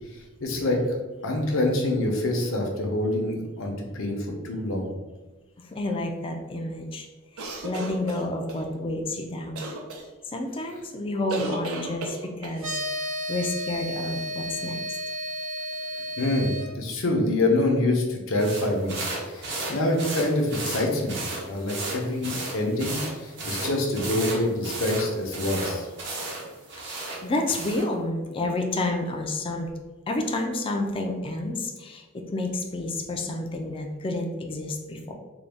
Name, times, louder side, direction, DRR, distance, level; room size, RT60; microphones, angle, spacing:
voice 1, 0.1-1.0 1.2-4.9 16.2-19.0 19.3-21.2 21.4-25.9, left 1 dB, 65° left, 1 dB, 0.7 m, -26 dB
voice 2, 5.6-7.1 7.3-9.6 10.3-12.7 13.3-14.8 26.9-29.7 30.1-35.1, left 2 dB, 25° left, 2 dB, 0.4 m, -30 dB
sound 1, 7.4-8.6 9.6-10.0 11.3-12.6, right 2 dB, 90° right, 0.6 m, -34 dB
sound 2, 12.6-16.7, equal, 75° right, 1.4 m, -32 dB
sound 3, 18.4-27.9, right 2 dB, 55° right, 0.8 m, -34 dB
3.9 x 2.3 x 3.4 m, 1.2 s
head